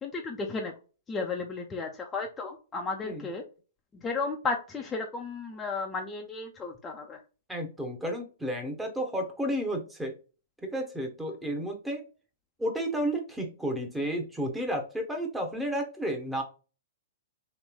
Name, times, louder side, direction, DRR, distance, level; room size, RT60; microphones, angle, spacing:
voice 1, 0.0-0.7 1.1-3.4 4.0-7.2, left 4 dB, 20° left, 1 dB, 0.5 m, -34 dB
voice 2, 7.5-10.1 10.6-12.0 12.6-16.4, equal, 5° right, 3 dB, 0.9 m, -32 dB
3.2 x 3.0 x 2.2 m, 0.35 s
hypercardioid pair, 125°, 0 cm